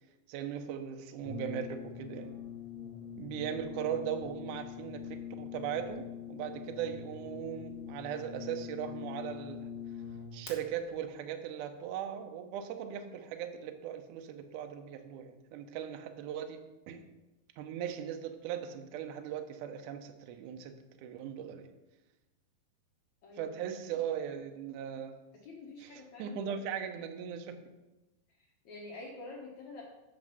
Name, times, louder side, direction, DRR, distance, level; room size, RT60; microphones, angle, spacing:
voice 1, 0.3-2.4 3.2-9.7 10.3-16.6 16.9-17.0 17.6-20.7 21.0-21.7 23.4-25.2 25.8-25.9 26.2-27.6, right 9 dB, 90° right, 6 dB, 1.7 m, -39 dB
Brass instrument, 1.2-10.5, left 7 dB, 50° left, 1.5 m, -43 dB
voice 2, 23.2-24.0 25.4-26.6 28.4-29.8, left 3 dB, 70° left, -3 dB, 1.8 m, -48 dB
8.4 x 6.0 x 5.5 m, 1.1 s
omnidirectional pair, 4.6 m